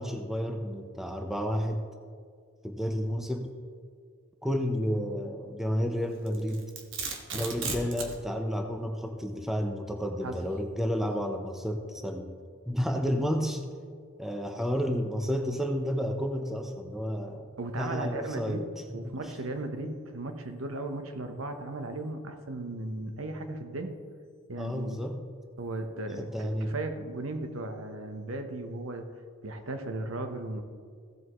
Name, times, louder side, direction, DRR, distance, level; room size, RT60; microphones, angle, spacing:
voice 1, 0.0-1.8 2.6-3.5 4.4-6.7 7.3-12.3 12.7-13.6 14.2-17.5 17.8-19.2 24.6-25.2 26.2-26.8, equal, ahead, 4 dB, 0.6 m, -31 dB
Domestic sounds home sounds, 6.3-8.2, right 4 dB, 65° right, 1.3 m, -35 dB
voice 2, 17.6-24.0 24.5-25.0 25.6-29.1 29.4-30.6, right 2 dB, 80° right, 6 dB, 0.9 m, -36 dB
15.5 x 7.8 x 3.0 m, 2.1 s
head